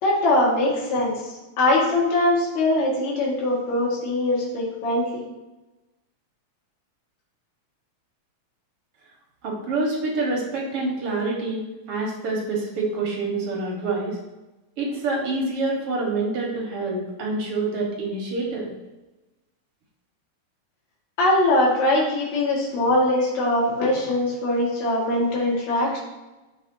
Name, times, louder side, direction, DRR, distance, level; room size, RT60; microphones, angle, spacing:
voice 1, 0.0-1.2 1.6-5.2 21.2-26.0, left 1 dB, 70° left, -3 dB, 2.9 m, -22 dB
voice 2, 9.4-11.6 11.9-14.2 14.8-18.7, right 3 dB, 55° right, -2 dB, 2.2 m, -26 dB
8.3 x 6.1 x 2.7 m, 1.1 s
omnidirectional pair, 3.3 m